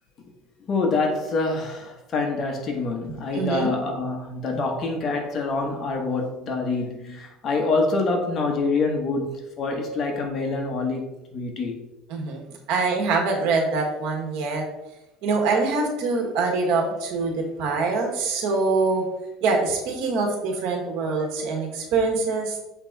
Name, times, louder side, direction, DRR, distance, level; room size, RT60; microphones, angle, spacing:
voice 1, 0.7-11.8, left 3 dB, 35° left, 1.1 m, -26 dB
voice 2, 3.3-3.7 12.1-12.4 12.7-14.6 15.2-19.1 19.4-22.6, right 3 dB, 65° right, 1.7 m, -24 dB
7.1 x 4.4 x 4.0 m
cardioid pair, 150°, 0 cm